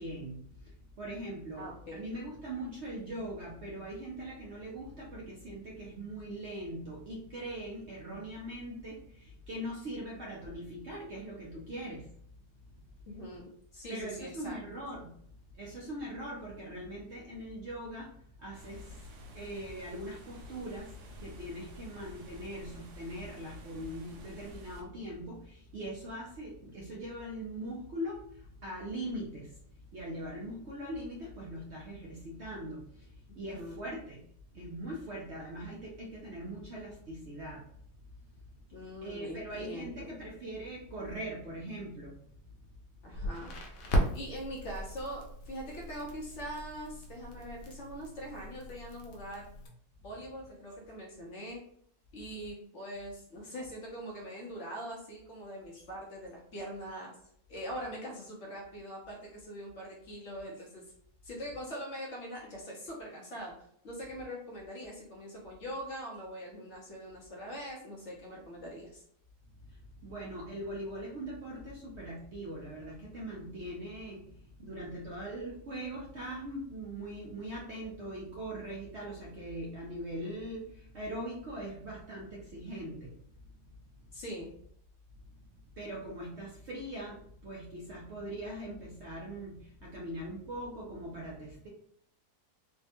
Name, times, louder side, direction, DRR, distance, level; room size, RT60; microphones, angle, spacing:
voice 1, 0.0-12.1 13.9-15.2 15.5-18.1 18.4-19.1 19.3-29.6 29.9-34.2 34.5-37.7 39.0-42.2 69.7-83.1 85.7-91.7, right 1 dB, 60° right, -4 dB, 0.7 m, -41 dB
voice 2, 1.5-2.0 13.1-14.6 33.3-33.8 38.7-40.1 43.0-43.5 44.1-49.5 50.0-51.6 52.1-57.1 57.5-60.8 61.2-63.5 63.8-69.0 84.1-84.5, equal, 55° left, -2 dB, 0.9 m, -42 dB
sound 1, 18.5-24.8, left 1 dB, 75° right, 1.2 m, -50 dB
Crackle, 43.1-49.7, equal, 80° left, 1.2 m, -37 dB
3.4 x 2.1 x 2.7 m, 0.65 s
omnidirectional pair, 1.7 m